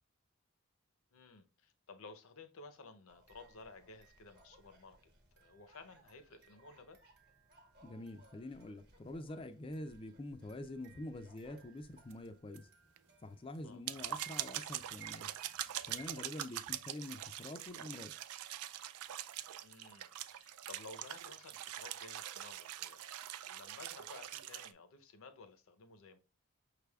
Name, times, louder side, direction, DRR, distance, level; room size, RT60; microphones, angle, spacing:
voice 1, 1.1-5.0 5.4-7.0 13.6-13.8 19.6-26.2, left 3 dB, 70° left, 0.6 m, -55 dB
sound 1, 3.1-16.2, right 6 dB, 45° right, 1.0 m, -61 dB
voice 2, 7.8-12.7 13.2-15.3 15.9-18.1, left 1 dB, 25° left, 0.3 m, -46 dB
sound 2, 12.1-12.2 12.6-12.7 13.0-13.1 13.6-24.7, right 12 dB, 85° right, 0.3 m, -44 dB
5.8 x 3.4 x 2.3 m
head